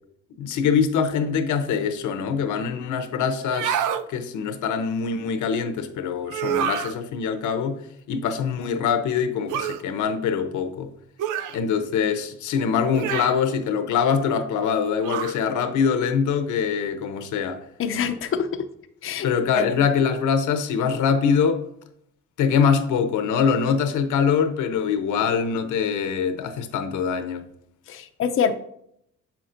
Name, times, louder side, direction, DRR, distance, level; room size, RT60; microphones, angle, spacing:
voice 1, 0.4-7.8 8.1-10.9 11.5-17.6 19.2-21.6 22.4-27.4, left 6 dB, 80° left, 0.8 m, -23 dB
sound 1, 3.4-4.0 6.3-6.9 9.5-9.8 11.2-11.6 12.9-13.4 15.0-15.4, right 9 dB, 80° right, 0.5 m, -27 dB
voice 2, 17.8-18.7 19.0-19.3 19.6-19.7 27.9-28.6, left 7 dB, 45° left, 0.5 m, -25 dB
7.4 x 5.8 x 2.5 m
cardioid pair, 90°, 30 cm